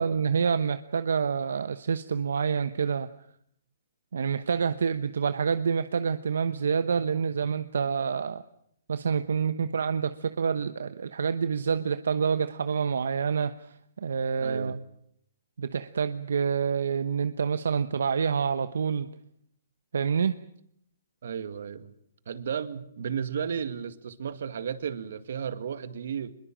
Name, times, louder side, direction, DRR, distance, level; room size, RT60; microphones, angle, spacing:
voice 1, 0.0-3.1 4.1-8.4 8.9-13.7 14.0-14.8 15.6-19.1 19.9-20.4, right 6 dB, 80° right, 11 dB, 1.0 m, -27 dB
voice 2, 14.4-14.8 21.2-21.9 22.3-26.3, right 7 dB, 65° right, 10 dB, 2.0 m, -33 dB
23.0 x 22.0 x 7.5 m, 0.72 s
hypercardioid pair, 160°, 0 cm